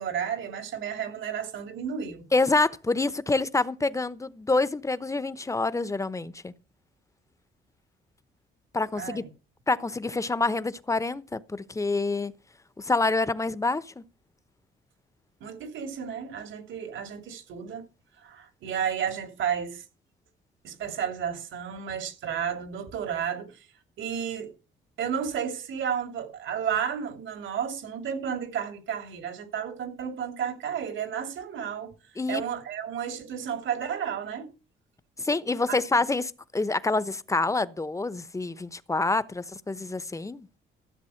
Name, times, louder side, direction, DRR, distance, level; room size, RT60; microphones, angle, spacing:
voice 1, 0.0-2.3 9.0-9.3 15.4-17.9 18.2-19.8 20.6-23.7 24.0-24.5 25.0-34.5 35.7-35.8, right 8 dB, 75° right, 2.8 m, -32 dB
voice 2, 2.3-6.5 8.7-9.2 9.7-12.3 12.8-14.0 32.2-32.4 35.2-40.5, left 3 dB, 15° left, 0.9 m, -27 dB
14.0 x 7.5 x 5.8 m
cardioid pair, 90°, 20 cm